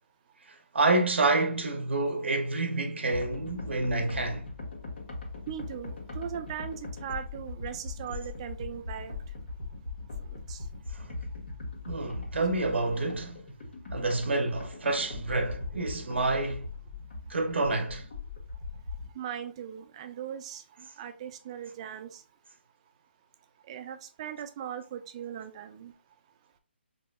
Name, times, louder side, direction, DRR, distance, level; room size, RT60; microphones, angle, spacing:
voice 1, 0.7-4.4 10.9-11.1 11.9-13.4 13.9-16.7 17.3-18.0, right 2 dB, 75° right, 0.7 m, -28 dB
sound 1, 3.1-19.1, left 3 dB, 60° left, 1.6 m, -40 dB
voice 2, 5.5-9.1 10.3-10.6 19.1-22.2 23.7-25.9, right 9 dB, 30° right, 0.4 m, -39 dB
5.2 x 2.7 x 2.3 m
hypercardioid pair, 150°, 6 cm